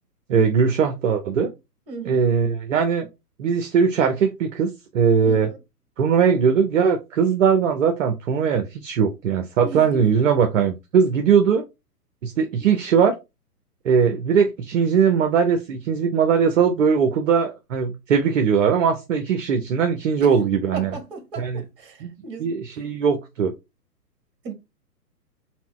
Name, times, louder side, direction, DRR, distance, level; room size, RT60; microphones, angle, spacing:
voice 1, 0.3-1.5 2.0-3.1 3.4-5.5 6.0-11.6 12.2-13.2 13.8-21.0 21.4-21.6 22.0-22.1 22.4-23.5, right 6 dB, 50° right, 0.6 m, -20 dB
voice 2, 1.9-2.3 5.2-5.6 9.6-10.3 20.2-20.3 20.7-22.5 24.4-24.5, right 3 dB, 35° right, 1.4 m, -36 dB
4.2 x 2.1 x 4.3 m
figure-of-eight pair, 125°, 48 cm